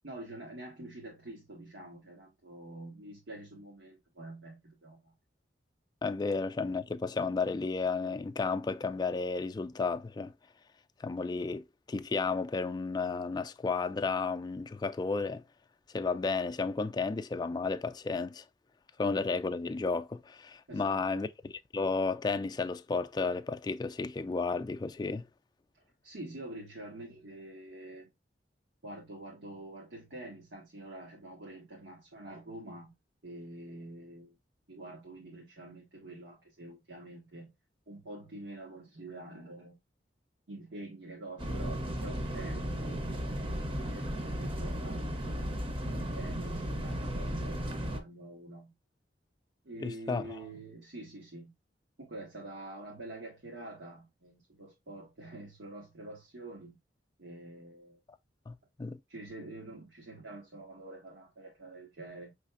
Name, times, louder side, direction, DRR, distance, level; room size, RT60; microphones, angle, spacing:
voice 1, 0.0-5.1 20.7-21.2 26.0-28.1 28.8-32.9 33.2-34.3 34.7-37.5 37.9-39.8 40.5-43.1 43.9-45.7 46.1-48.7 49.6-51.5 52.0-56.8 57.2-58.0 59.1-62.3, right 2 dB, 85° right, 1.5 m, -46 dB
voice 2, 6.0-10.3 11.0-15.4 15.9-18.4 19.0-25.3 49.8-50.2 58.5-59.0, left 4 dB, 25° left, 0.3 m, -33 dB
sound 1, 41.4-48.0, equal, 30° right, 0.7 m, -35 dB
5.7 x 3.2 x 2.5 m
head